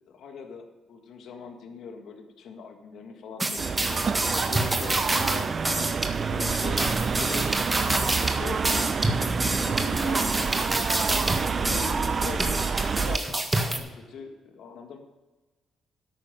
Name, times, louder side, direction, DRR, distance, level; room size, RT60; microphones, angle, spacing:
voice 1, 0.0-5.6 6.2-10.8 11.5-15.0, left 5 dB, 70° left, 5 dB, 1.8 m, -41 dB
sound 1, 3.4-13.8, right 2 dB, 15° right, 1.5 m, -28 dB
sound 2, 3.6-13.2, right 5 dB, 40° right, 0.5 m, -28 dB
11.0 x 8.8 x 5.2 m, 1.2 s
cardioid pair, 90°, 0 cm